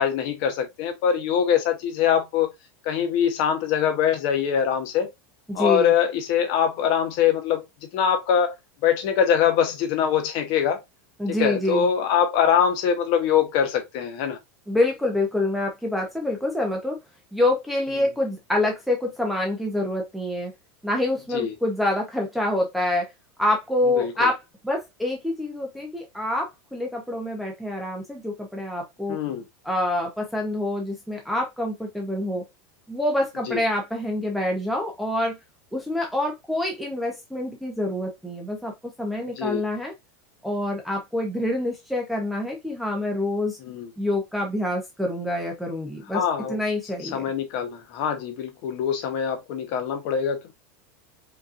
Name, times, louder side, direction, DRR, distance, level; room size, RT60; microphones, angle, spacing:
voice 1, 0.0-2.5 2.8-5.1 5.5-7.6 7.9-8.5 8.8-10.8 11.3-14.4 21.3-21.5 24.0-24.3 29.1-29.4 33.5-33.6 39.4-39.6 43.6-43.9 46.1-46.6 47.1-50.5, left 8 dB, 45° left, 1.0 m, -23 dB
voice 2, 5.5-5.9 11.2-11.9 14.7-17.0 17.3-20.5 20.8-23.1 23.4-24.4 24.6-29.2 29.6-32.4 32.9-35.4 35.7-39.9 40.4-43.6 44.0-46.2 46.5-47.3, left 1 dB, ahead, 0.7 m, -26 dB
5.1 x 2.9 x 2.5 m
supercardioid pair, 175°, 9 cm